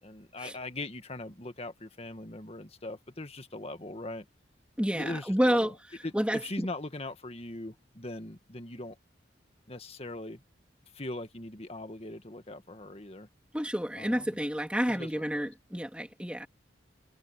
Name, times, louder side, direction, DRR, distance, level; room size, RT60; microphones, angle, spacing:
voice 1, 0.0-4.2 4.9-5.7 6.0-9.0 9.7-10.4 10.9-13.3 14.0-14.4 14.9-15.5, left 2 dB, 35° left, 1.7 m, -40 dB
voice 2, 4.8-5.7 6.1-6.7 13.5-16.5, equal, 5° right, 2.8 m, -29 dB
head